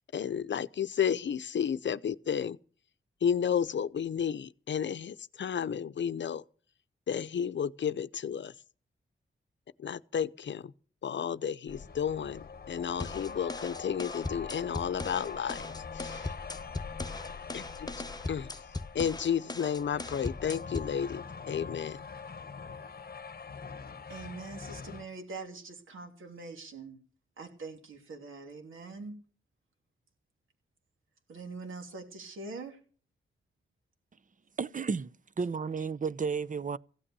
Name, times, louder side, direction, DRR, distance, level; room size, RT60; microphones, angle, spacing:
voice 1, 0.1-2.6 3.2-6.4 7.1-8.5 9.8-10.7 11.0-16.3 17.5-17.9 18.3-18.5 18.9-22.1, left 8 dB, 65° left, 0.7 m, -32 dB
sound 1, 11.7-25.1, left 5 dB, 50° left, 1.0 m, -43 dB
sound 2, 13.0-21.0, left 2 dB, 20° left, 0.9 m, -39 dB
voice 2, 24.1-27.0 27.4-29.2 31.3-32.8, right 3 dB, 85° right, 3.0 m, -43 dB
voice 3, 34.6-36.8, right 5 dB, 40° right, 0.7 m, -33 dB
16.0 x 8.7 x 6.8 m
cardioid pair, 45°, 20 cm